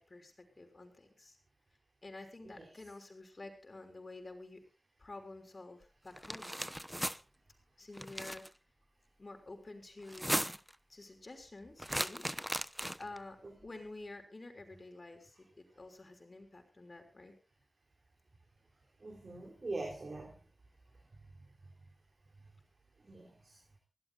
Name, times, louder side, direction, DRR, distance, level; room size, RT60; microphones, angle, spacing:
voice 1, 0.0-1.4 2.0-4.6 5.0-6.5 7.8-8.4 9.2-10.5 10.9-12.2 13.0-17.3, left 2 dB, 50° left, 6 dB, 5.8 m, -50 dB
sound 1, 6.1-7.2 7.9-8.5 10.0-10.7 11.8-13.2, equal, 5° right, 0.9 m, -37 dB
voice 2, 19.0-20.4 23.0-23.6, right 2 dB, 60° right, 2 dB, 3.6 m, -43 dB
24.5 x 17.5 x 2.5 m, 0.33 s
cardioid pair, 50°, 0 cm